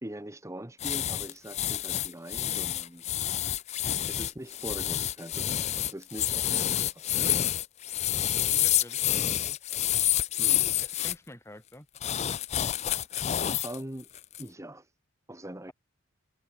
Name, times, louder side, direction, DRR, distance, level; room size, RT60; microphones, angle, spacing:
voice 1, 0.0-3.1 3.6-3.7 4.1-7.5 10.4-10.7 12.9-14.1 14.4-14.9 15.3-15.7, right 1 dB, 15° right, 1.5 m, -42 dB
sound 1, 0.8-11.1 12.0-13.8 14.1-14.4, left 12 dB, 30° left, 0.4 m, -28 dB
voice 2, 8.1-9.6 10.8-11.9, left 1 dB, 10° left, 3.3 m, -49 dB
head